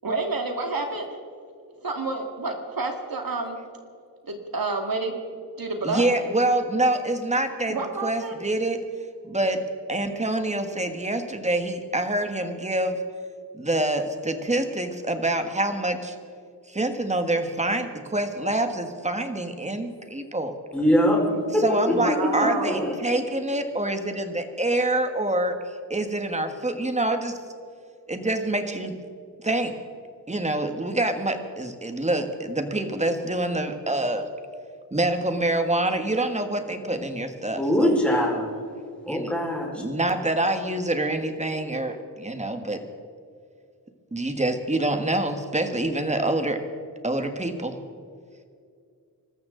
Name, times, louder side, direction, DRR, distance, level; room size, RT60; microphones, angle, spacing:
voice 1, 0.0-1.1 1.8-3.6 4.3-5.2 5.6-6.2 7.7-8.3 21.9-22.9, right 3 dB, 60° right, 3 dB, 2.2 m, -29 dB
voice 2, 5.8-7.8 8.0-8.8 9.2-9.6 9.9-13.0 13.5-16.1 16.7-20.5 21.6-25.5 25.9-27.4 28.1-29.0 29.4-29.7 30.3-34.2 34.9-38.0 39.1-39.3 39.7-42.8 44.1-46.6 47.0-47.8, right 1 dB, 15° right, 6 dB, 1.6 m, -26 dB
voice 3, 20.7-21.2 21.5-21.9 22.6-22.9 37.6-38.5 39.0-39.7, equal, 5° left, -3 dB, 5.0 m, -22 dB
25.0 x 13.5 x 3.9 m, 2.3 s
wide cardioid pair, 100°, 39 cm